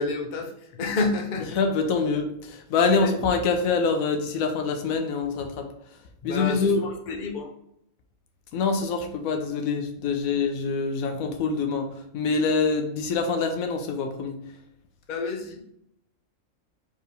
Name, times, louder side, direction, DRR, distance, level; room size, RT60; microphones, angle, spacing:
voice 1, 0.0-1.6 2.9-3.2 6.2-7.5 15.1-15.6, left 3 dB, 45° left, 2 dB, 0.7 m, -29 dB
voice 2, 1.5-6.8 8.5-14.4, left 4 dB, 90° left, 5 dB, 1.1 m, -25 dB
4.6 x 3.6 x 3.3 m, 0.77 s
omnidirectional pair, 1.4 m